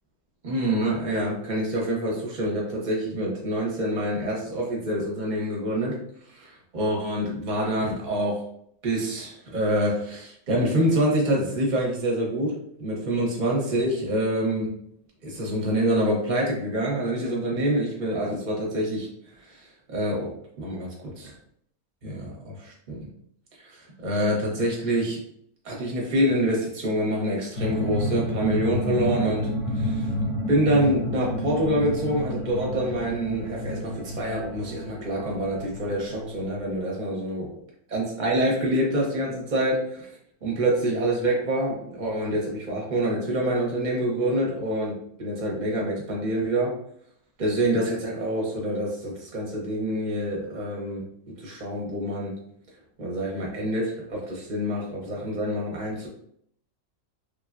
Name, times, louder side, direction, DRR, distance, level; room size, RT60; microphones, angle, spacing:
voice 1, 0.4-6.0 6.3-8.4 8.8-14.7 15.2-19.1 19.4-19.6 19.9-20.3 20.6-20.9 21.2-21.3 22.0-23.0 23.6-25.2 25.6-30.1 30.5-37.5 37.9-40.1 40.4-46.7 47.4-52.3 53.0-56.1, right 1 dB, 40° right, -3 dB, 0.8 m, -26 dB
sound 1, 27.6-36.8, left 1 dB, 30° left, 0.8 m, -30 dB
3.2 x 2.2 x 2.4 m, 0.70 s
omnidirectional pair, 1.4 m